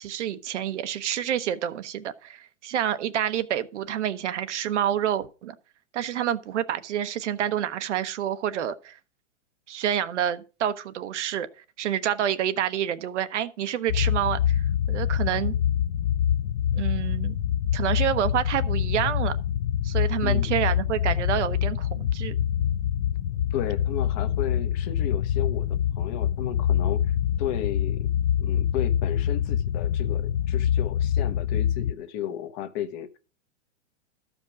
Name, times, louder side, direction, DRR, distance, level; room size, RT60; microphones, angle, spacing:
voice 1, 0.0-5.5 5.9-9.0 9.7-15.6 16.7-17.4 17.7-19.4 19.8-22.3, right 10 dB, 70° right, 1.1 m, -28 dB
sound 1, 13.9-31.9, left 10 dB, 45° left, 0.5 m, -25 dB
voice 2, 23.5-25.7 26.0-28.1 28.4-33.1, left 10 dB, 30° left, 0.9 m, -34 dB
13.0 x 5.2 x 6.1 m
supercardioid pair, 160°, 37 cm